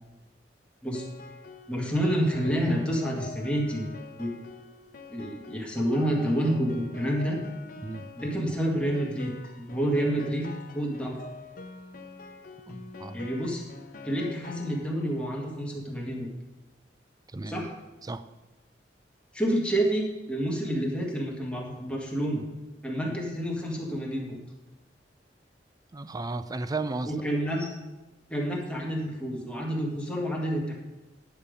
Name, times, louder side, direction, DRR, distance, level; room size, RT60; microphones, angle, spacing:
Piano, 0.9-15.3, left 3 dB, 50° left, 0.8 m, -46 dB
voice 1, 1.7-3.9 4.2-4.3 5.1-7.4 8.2-10.5 10.7-11.2 13.1-13.6 14.0-16.3 17.4-17.7 19.3-22.4 22.8-24.4 27.0-27.7 28.3-30.7, equal, 5° left, -2 dB, 1.8 m, -28 dB
voice 2, 12.7-13.2 17.3-17.6 18.0-18.2 23.1-23.2 25.9-27.1, right 3 dB, 20° right, 12 dB, 0.4 m, -34 dB
9.9 x 6.9 x 5.2 m, 1.1 s
head